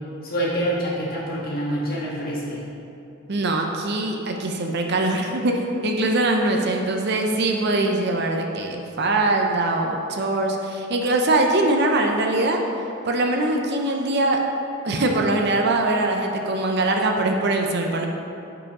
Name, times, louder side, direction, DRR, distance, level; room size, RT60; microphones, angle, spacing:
voice 1, 0.2-2.6, right 1 dB, 45° left, -6 dB, 1.8 m, -26 dB
voice 2, 3.3-12.6 13.1-14.4 14.8-18.1, right 2 dB, 50° right, 2 dB, 0.6 m, -22 dB
10.0 x 4.9 x 3.6 m, 2.8 s
head